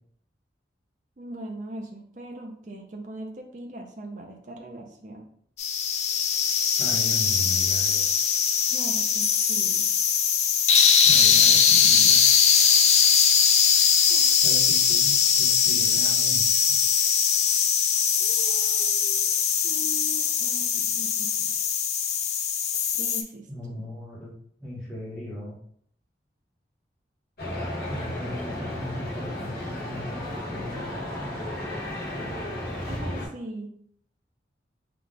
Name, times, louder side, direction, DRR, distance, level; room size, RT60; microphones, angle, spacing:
voice 1, 1.2-5.2 8.7-9.9 14.1-14.2 18.2-19.4 19.6-21.6 22.9-23.8 32.9-33.7, right 1 dB, 45° right, 2 dB, 0.5 m, -40 dB
sound 1, 5.6-23.2, left 7 dB, 40° left, 0.3 m, -21 dB
voice 2, 6.8-8.1 11.0-12.2 14.4-16.8 23.5-24.3 24.6-25.6 27.9-31.5 32.1-32.8, left 1 dB, 5° left, -9 dB, 1.0 m, -38 dB
sound 2, 27.4-33.3, left 1 dB, 55° left, 1.2 m, -33 dB
3.9 x 2.3 x 3.3 m, 0.64 s
head